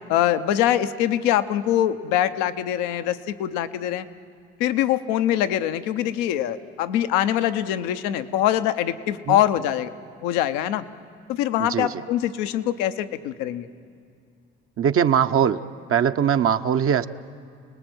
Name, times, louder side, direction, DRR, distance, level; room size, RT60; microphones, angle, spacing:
voice 1, 0.1-4.1 4.6-9.9 10.2-10.8 11.3-13.7, left 11 dB, 85° left, 11 dB, 0.8 m, -23 dB
voice 2, 11.6-11.9 14.8-15.6 15.9-17.1, right 8 dB, 50° right, 8 dB, 0.8 m, -21 dB
29.0 x 19.5 x 7.9 m, 2.3 s
supercardioid pair, 65°, 29 cm